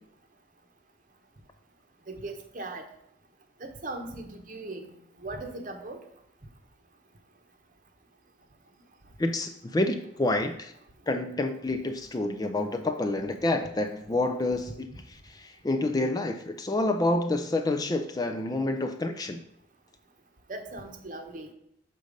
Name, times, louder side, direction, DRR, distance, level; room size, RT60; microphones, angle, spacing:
voice 1, 2.1-2.9 3.6-6.0 14.9-15.0 20.5-21.5, right 2 dB, 45° right, 6 dB, 0.9 m, -39 dB
voice 2, 9.2-10.7 11.1-19.4, left 2 dB, 20° left, 6 dB, 0.4 m, -28 dB
6.6 x 4.0 x 5.1 m, 0.74 s
head